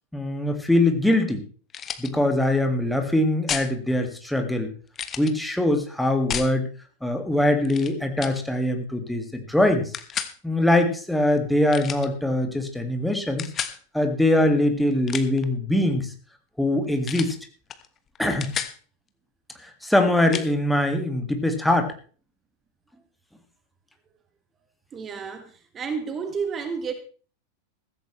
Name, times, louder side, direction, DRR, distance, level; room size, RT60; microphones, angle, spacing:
voice 1, 0.1-1.4 2.0-4.7 5.2-6.7 7.0-9.9 10.4-13.5 13.9-16.1 16.6-17.4 18.2-18.5 19.6-21.9, left 1 dB, ahead, 5 dB, 1.9 m, -22 dB
sound 1, 1.7-2.1 3.5-3.7 4.9-5.3 6.3-6.5 7.6-7.9 8.2-8.4 9.9-10.3 11.7-12.1 13.4-13.8 14.9-15.4 17.0-17.4 17.7-17.9 18.1-18.8 20.3-20.5, left 8 dB, 25° left, 1.2 m, -31 dB
voice 2, 24.9-26.9, right 5 dB, 25° right, 8 dB, 1.5 m, -31 dB
15.5 x 14.5 x 3.2 m, 0.40 s
figure-of-eight pair, 90°, 0 cm